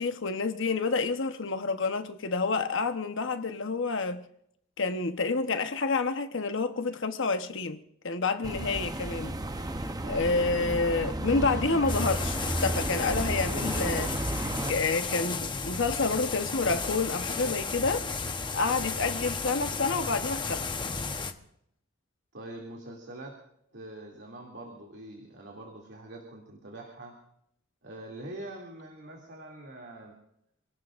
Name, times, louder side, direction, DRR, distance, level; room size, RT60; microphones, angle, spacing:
voice 1, 0.0-4.2 4.8-9.4 10.0-18.1 18.5-20.7, left 4 dB, 65° left, 1.1 m, -29 dB
sound 1, 8.4-14.7, right 1 dB, 20° right, 0.8 m, -32 dB
sound 2, 11.9-21.3, left 4 dB, 25° left, 0.9 m, -34 dB
voice 2, 22.3-23.4 23.7-27.1 27.8-30.1, right 1 dB, 60° right, 2.6 m, -44 dB
28.5 x 18.0 x 2.5 m
head